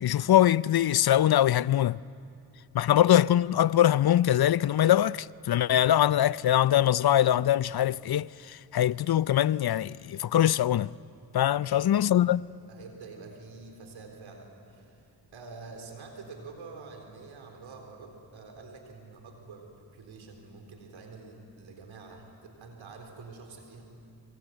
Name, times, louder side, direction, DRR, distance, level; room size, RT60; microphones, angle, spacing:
voice 1, 0.0-2.0 2.7-10.9 11.3-12.4, left 11 dB, 55° left, 0.6 m, -23 dB
voice 2, 11.6-12.1 12.7-23.8, right 4 dB, 90° right, 4.0 m, -47 dB
26.0 x 24.0 x 9.2 m
cardioid pair, 45°, 45 cm